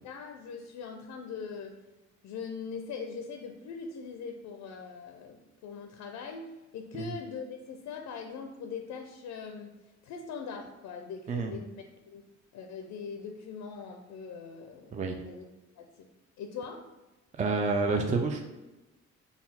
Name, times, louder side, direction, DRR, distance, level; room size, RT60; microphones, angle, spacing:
voice 1, 0.0-1.8 2.2-9.8 10.0-12.2 12.5-15.0 15.3-15.4 15.8-16.1 16.4-16.9, left 5 dB, 75° left, 4 dB, 0.5 m, -41 dB
voice 2, 17.4-18.4, right 4 dB, 25° right, 4 dB, 0.4 m, -28 dB
4.0 x 2.3 x 4.2 m, 1.1 s
cardioid pair, 90°, 30 cm